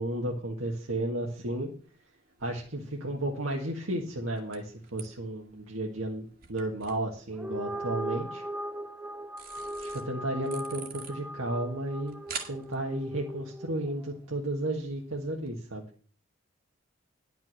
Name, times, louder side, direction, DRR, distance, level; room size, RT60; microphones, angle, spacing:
voice 1, 0.0-1.7 2.4-8.4 9.8-12.2 12.5-15.8, right 1 dB, 85° right, -1 dB, 1.7 m, -33 dB
sound 1, 1.5-15.6, right 6 dB, 45° right, 1.7 m, -49 dB
sound 2, 7.3-13.9, right 1 dB, 5° right, 0.4 m, -39 dB
11.0 x 5.9 x 7.7 m, 0.43 s
head